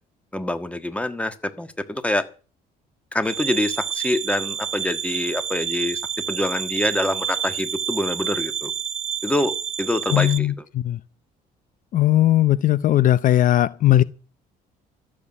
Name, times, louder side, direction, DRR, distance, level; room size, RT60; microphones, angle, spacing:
voice 1, 0.3-2.3 3.1-6.0 6.3-8.7 9.2-10.6, left 1 dB, 5° left, 1.5 m, -25 dB
sound 1, 3.2-10.4, right 9 dB, 40° right, 0.9 m, -29 dB
voice 2, 10.1-11.0 11.9-14.0, left 13 dB, 50° left, 0.6 m, -18 dB
13.5 x 7.3 x 9.7 m
cardioid pair, 110°, 17 cm